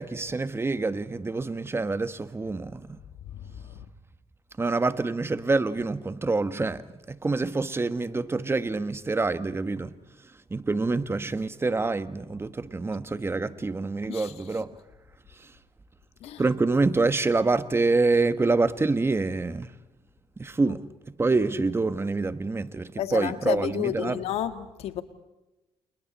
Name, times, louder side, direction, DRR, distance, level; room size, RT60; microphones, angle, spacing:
voice 1, 0.0-3.0 4.6-9.9 10.5-14.7 15.4-15.5 16.4-19.7 20.4-20.9 21.2-24.2, right 3 dB, 25° right, 1.4 m, -26 dB
voice 2, 3.3-3.9 14.1-14.3 16.2-16.4 20.6-20.7 23.0-25.0, left 11 dB, 85° left, 1.7 m, -31 dB
30.0 x 29.0 x 4.3 m
cardioid pair, 85°, 10 cm